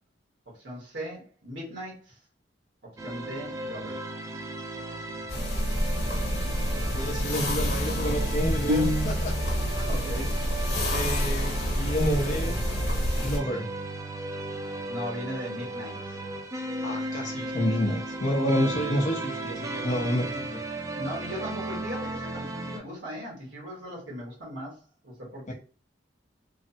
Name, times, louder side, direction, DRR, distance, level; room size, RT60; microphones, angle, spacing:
voice 1, 0.5-2.2 3.0-4.0 9.8-10.4 14.9-16.2 21.0-25.5, equal, 75° right, -4 dB, 1.3 m, -38 dB
sound 1, 3.0-22.8, right 2 dB, 20° right, 0.3 m, -36 dB
sound 2, 5.3-13.4, equal, 60° left, 1.0 m, -28 dB
voice 2, 6.7-9.3 10.9-12.5 13.2-13.7 16.8-20.6 25.5-25.6, equal, 40° left, 1 dB, 0.7 m, -29 dB
sound 3, 8.7-9.7, left 1 dB, 45° right, 0.7 m, -28 dB
3.1 x 2.0 x 2.7 m, 0.37 s
head